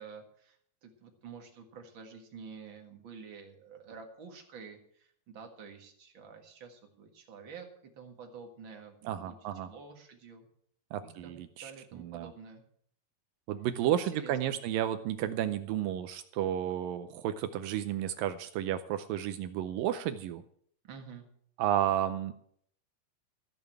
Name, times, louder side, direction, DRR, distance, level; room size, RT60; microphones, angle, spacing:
voice 1, 0.0-10.5 11.0-12.6 14.0-14.6 20.8-21.2, right 5 dB, 50° right, 3 dB, 1.6 m, -49 dB
voice 2, 9.1-9.7 10.9-12.3 13.5-20.4 21.6-22.3, right 11 dB, 85° right, 9 dB, 2.0 m, -32 dB
14.5 x 7.0 x 7.9 m, 0.64 s
omnidirectional pair, 4.8 m